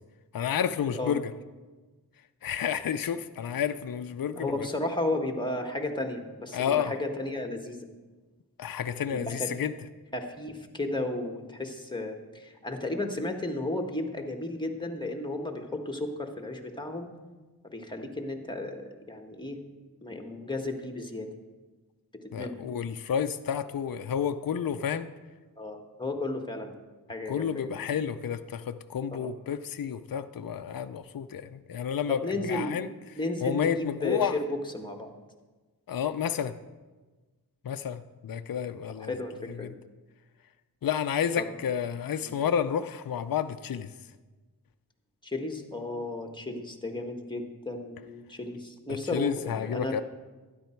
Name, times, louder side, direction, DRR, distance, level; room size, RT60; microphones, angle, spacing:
voice 1, 0.3-1.3 2.4-4.7 6.5-6.9 8.6-9.7 22.3-25.1 27.3-32.9 33.4-34.4 35.9-36.6 37.6-39.1 39.6-39.7 40.8-43.9 49.1-50.0, left 8 dB, 60° left, 10 dB, 0.6 m, -30 dB
voice 2, 4.3-7.9 9.1-9.5 10.1-17.1 17.7-19.6 20.0-21.3 22.2-22.6 25.6-26.8 27.1-27.7 29.2-29.3 32.1-32.8 33.2-35.1 39.0-39.7 41.4-41.5 42.2-42.3 45.2-50.0, left 2 dB, 10° left, 4 dB, 1.6 m, -34 dB
12.5 x 10.5 x 4.5 m, 1.3 s
cardioid pair, 45°, 40 cm